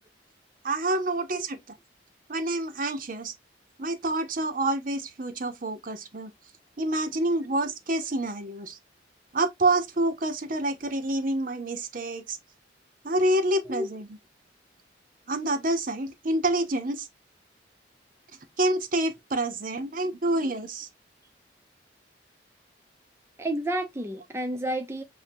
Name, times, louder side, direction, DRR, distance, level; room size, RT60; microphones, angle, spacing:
voice 1, 0.6-1.8 2.3-3.3 3.8-6.3 6.8-8.8 9.3-12.4 13.0-14.1 15.3-17.1 18.6-20.9, right 1 dB, 45° right, 0.8 m, -27 dB
voice 2, 23.4-25.0, right 1 dB, 15° right, 0.5 m, -30 dB
7.0 x 2.8 x 2.6 m
head